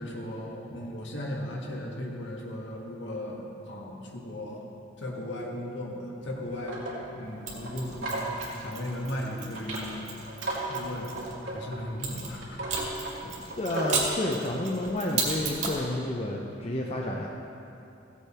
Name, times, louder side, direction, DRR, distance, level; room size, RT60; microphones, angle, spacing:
voice 1, 0.0-4.7 5.0-10.1 10.7-11.2 11.4-12.9 13.2-13.4, left 1 dB, 70° left, -1 dB, 1.7 m, -37 dB
sound 1, 6.2-14.1, right 1 dB, 80° right, 2.9 m, -37 dB
Mechanisms, 7.5-11.3 12.0-15.8, right 4 dB, 40° right, 2.2 m, -35 dB
voice 2, 13.6-17.3, left 1 dB, 30° left, -1 dB, 0.8 m, -30 dB
16.0 x 8.3 x 4.4 m, 2.7 s
head